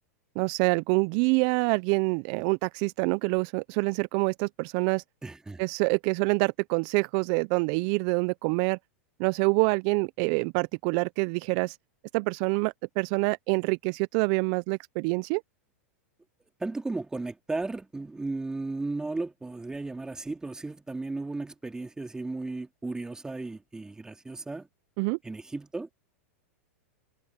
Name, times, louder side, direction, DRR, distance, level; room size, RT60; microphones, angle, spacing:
voice 1, 0.4-5.0 5.6-8.8 9.2-11.8 12.1-15.4 25.0-25.2, right 30 dB, 50° right, 0.5 m, -26 dB
voice 2, 5.2-5.6 16.6-24.7 25.2-25.9, right 3 dB, 10° right, 2.6 m, -35 dB
hypercardioid pair, 115°, 7 cm